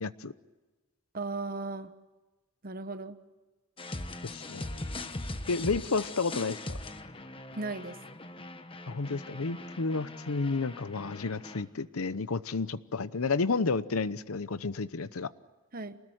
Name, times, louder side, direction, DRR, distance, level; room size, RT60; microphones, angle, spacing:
voice 1, 0.0-0.3 4.2-4.8 5.5-6.8 8.9-15.3, left 4 dB, 85° left, 15 dB, 0.8 m, -31 dB
voice 2, 1.1-1.9 2.6-3.2 7.5-8.0 15.7-16.0, right 3 dB, 40° right, 11 dB, 1.2 m, -36 dB
sound 1, 3.8-11.6, left 2 dB, 25° left, 1.2 m, -41 dB
28.5 x 20.0 x 9.1 m, 1.2 s
head